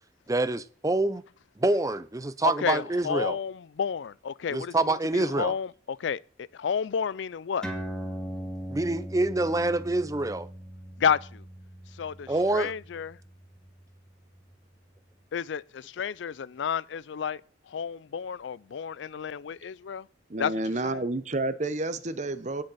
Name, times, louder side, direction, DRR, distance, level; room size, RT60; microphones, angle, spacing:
voice 1, 0.3-1.2 1.6-3.4 4.5-5.5 8.7-10.5 12.3-12.7, right 2 dB, 20° right, 0.5 m, -26 dB
voice 2, 2.4-7.6 11.0-11.4 12.0-13.2 15.3-17.4 17.7-20.1 20.4-21.0, left 7 dB, 75° left, 0.4 m, -31 dB
sound 1, 7.6-14.5, equal, 5° left, 2.2 m, -40 dB
voice 3, 20.3-22.6, right 2 dB, 40° right, 0.9 m, -30 dB
18.0 x 6.5 x 4.2 m
head